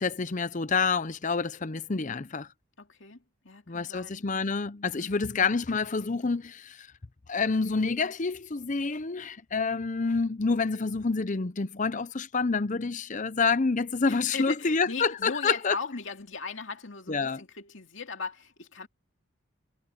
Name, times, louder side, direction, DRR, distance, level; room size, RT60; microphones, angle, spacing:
voice 1, 0.0-2.5 3.7-6.9 7.3-15.7 17.1-17.4, left 4 dB, 35° left, 0.6 m, -28 dB
voice 2, 2.8-4.2 4.9-5.2 14.0-18.9, left 4 dB, 60° left, 2.6 m, -38 dB
head